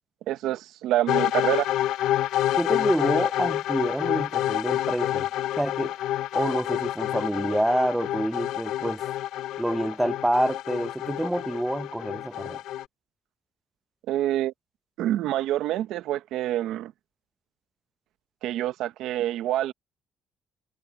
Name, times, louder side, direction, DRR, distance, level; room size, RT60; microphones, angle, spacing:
voice 1, 0.3-1.7 14.1-14.5 15.0-16.9 18.4-19.7, right 13 dB, 85° right, 0.8 m, -26 dB
sound 1, 1.1-12.8, left 13 dB, 85° left, 0.5 m, -28 dB
voice 2, 2.6-5.3 5.6-5.9 6.3-9.0 9.6-12.6, right 1 dB, 5° right, 0.5 m, -27 dB
cardioid pair, 155°, 0 cm